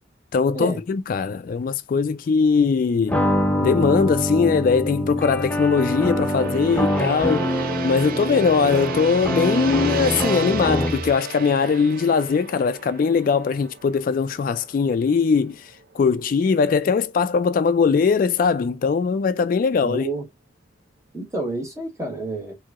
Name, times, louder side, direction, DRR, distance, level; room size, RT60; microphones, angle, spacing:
voice 1, 0.3-3.2 3.6-7.5 7.8-20.0, left 5 dB, 50° left, 0.3 m, -21 dB
sound 1, 3.1-11.1, equal, 10° left, 0.6 m, -24 dB
Gong, 3.3-15.4 15.7-16.0, right 5 dB, 55° right, 0.4 m, -34 dB
voice 2, 19.8-20.3 21.1-22.6, right 2 dB, 15° right, 1.3 m, -29 dB
4.5 x 2.7 x 2.4 m
head